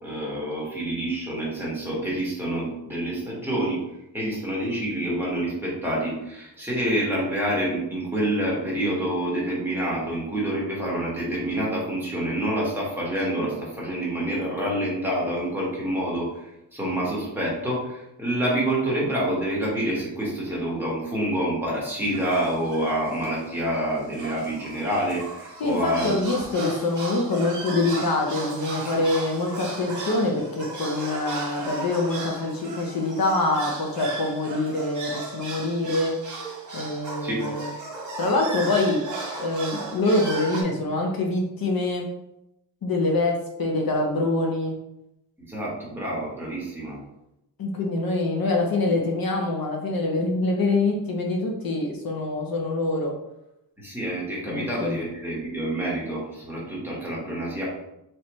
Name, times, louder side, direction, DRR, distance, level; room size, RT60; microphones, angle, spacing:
voice 1, 0.0-3.8 4.1-26.2 37.2-37.4 45.4-47.0 53.8-57.6, right 1 dB, 5° right, -6 dB, 1.3 m, -27 dB
sound 1, 22.1-22.9 23.2-23.3 23.6-23.8 24.1-40.6, right 3 dB, 45° right, 1.0 m, -36 dB
voice 2, 25.6-36.1 36.7-37.7 38.2-39.0 39.4-42.0 42.8-44.7 47.6-53.1 54.5-55.0, left 2 dB, 55° left, 0 dB, 0.7 m, -25 dB
4.3 x 3.2 x 3.0 m, 0.86 s
wide cardioid pair, 170°, 42 cm